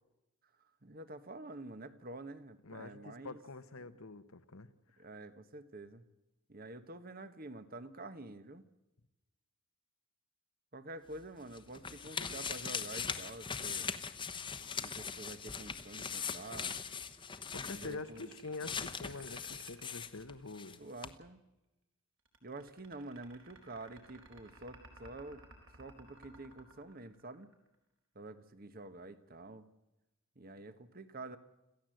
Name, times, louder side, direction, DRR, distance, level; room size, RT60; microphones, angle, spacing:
voice 1, 0.8-3.4 5.0-6.0 6.5-8.6 10.7-13.9 14.8-16.7 17.6-18.3 20.8-21.4 22.4-25.4 25.8-27.5 28.1-29.7 30.4-31.4, right 2 dB, 45° right, 1.2 m, -48 dB
voice 2, 2.6-4.7 17.5-20.8, left 3 dB, 75° left, 1.2 m, -46 dB
sound 1, 11.1-20.8 21.0-21.1, left 6 dB, 20° left, 1.0 m, -41 dB
sound 2, 17.8-20.8 22.3-27.8, right 2 dB, 60° right, 4.2 m, -57 dB
26.5 x 15.0 x 7.8 m
head